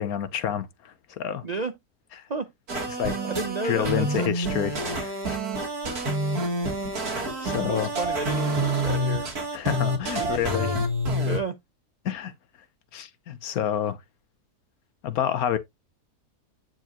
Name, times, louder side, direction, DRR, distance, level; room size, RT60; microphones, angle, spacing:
voice 1, 0.0-1.4 2.9-3.2 3.6-5.4 7.1-7.9 9.5-10.7 12.0-12.3 12.9-14.0 15.0-15.6, left 10 dB, 70° left, 1.3 m, -28 dB
sound 1, 2.7-11.4, right 1 dB, 70° right, 2.7 m, -27 dB
voice 2, 3.2-4.6 7.4-9.3 10.2-10.8 11.2-11.6, right 4 dB, 50° right, 0.5 m, -32 dB
9.4 x 4.7 x 2.9 m
omnidirectional pair, 1.7 m